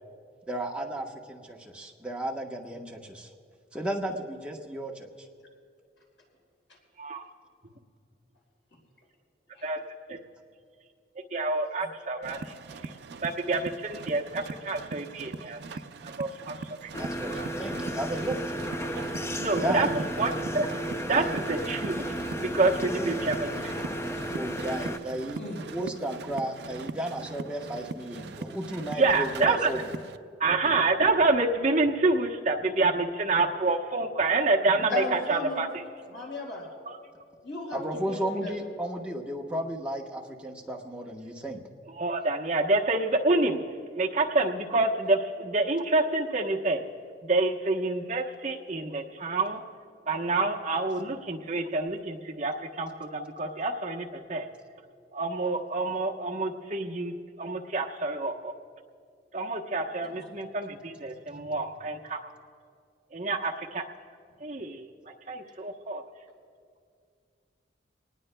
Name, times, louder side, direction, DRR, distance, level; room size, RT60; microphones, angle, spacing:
voice 1, 0.5-3.3 3.7-5.1 16.9-18.4 19.6-19.9 21.1-21.4 22.6-23.1 24.3-25.4 25.7-30.0 37.7-41.6, right 1 dB, 5° right, -1 dB, 1.0 m, -34 dB
voice 2, 11.3-12.4 13.2-15.6 16.2-16.6 16.8-16.9 19.4-20.7 21.1-23.7 29.0-29.7 30.4-35.7 42.0-43.6 44.0-46.8 47.2-49.6 50.1-54.5 55.1-57.1 57.4-58.5 59.3-62.2 63.1-63.8 64.4-64.8 65.3-66.0, right 3 dB, 40° right, 0 dB, 1.0 m, -27 dB
sound 1, 12.2-30.2, right 4 dB, 60° right, 0.4 m, -41 dB
sound 2, 16.9-25.0, equal, 15° left, 0.5 m, -33 dB
voice 3, 34.9-35.7 36.1-36.7 37.4-38.6 60.0-60.2, left 2 dB, 80° left, -2 dB, 4.6 m, -35 dB
24.5 x 19.5 x 2.2 m, 2.3 s
head